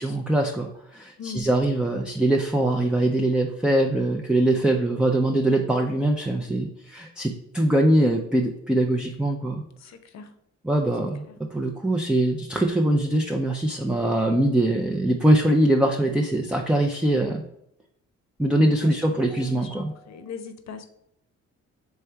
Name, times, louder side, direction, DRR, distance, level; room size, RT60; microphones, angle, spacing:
voice 1, 0.0-9.6 10.6-17.4 18.4-19.9, right 1 dB, 5° right, 1 dB, 0.4 m, -22 dB
voice 2, 9.8-10.3 18.8-20.8, left 5 dB, 60° left, 8 dB, 0.7 m, -40 dB
3.4 x 3.4 x 4.4 m, 0.77 s
cardioid pair, 90°, 30 cm